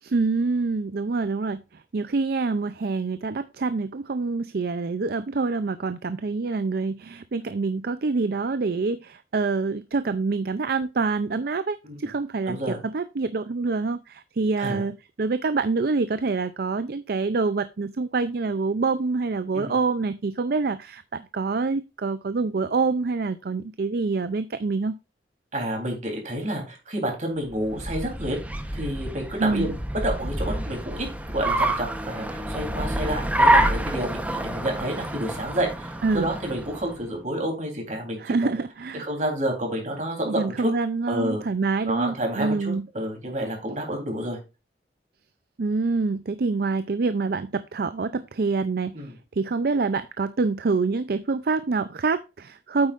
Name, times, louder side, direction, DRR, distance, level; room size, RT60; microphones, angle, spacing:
voice 1, 0.0-1.6 1.9-24.9 29.4-29.7 36.0-36.3 38.2-39.1 40.3-42.8 45.6-48.9 49.4-52.9, right 4 dB, 60° right, 13 dB, 0.5 m, -26 dB
voice 2, 12.5-12.8 14.6-14.8 19.5-19.7 25.5-28.4 28.7-29.8 30.0-31.1 31.3-38.3 38.9-40.7 41.1-41.4 41.9-44.4 48.9-49.1, right 1 dB, 45° right, 2 dB, 3.6 m, -29 dB
Car, 27.5-37.0, right 1 dB, 10° right, 0.9 m, -27 dB
8.7 x 8.2 x 2.5 m, 0.28 s
head